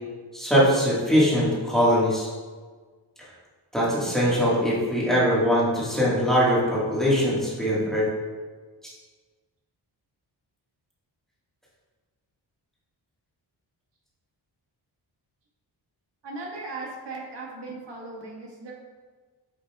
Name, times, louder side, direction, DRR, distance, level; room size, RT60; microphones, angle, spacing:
voice 1, 0.3-2.3 3.7-8.0, equal, ahead, -8 dB, 1.7 m, -22 dB
voice 2, 16.2-18.7, right 3 dB, 70° right, -3 dB, 1.7 m, -37 dB
8.8 x 5.4 x 2.4 m, 1.5 s
wide cardioid pair, 175°, 43 cm